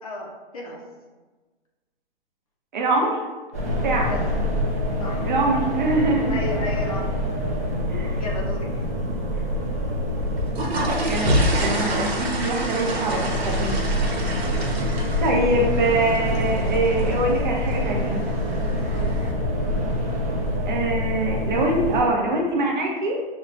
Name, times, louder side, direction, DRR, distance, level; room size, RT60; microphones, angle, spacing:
voice 1, 0.0-0.8 4.1-4.5 5.0-5.3 6.3-7.2 8.2-8.7 18.9-19.3, left 2 dB, 35° left, -2 dB, 0.5 m, -33 dB
voice 2, 2.7-3.2 3.7-4.1 5.2-6.4 7.9-8.2 11.0-13.7 15.2-18.2 20.7-23.2, right 2 dB, 50° right, -1 dB, 0.8 m, -24 dB
sound 1, 3.5-22.0, equal, 15° right, 0.4 m, -26 dB
sound 2, 10.2-19.3, right 1 dB, 85° right, 1.0 m, -28 dB
6.2 x 2.2 x 2.5 m, 1.3 s
hypercardioid pair, 160°, 31 cm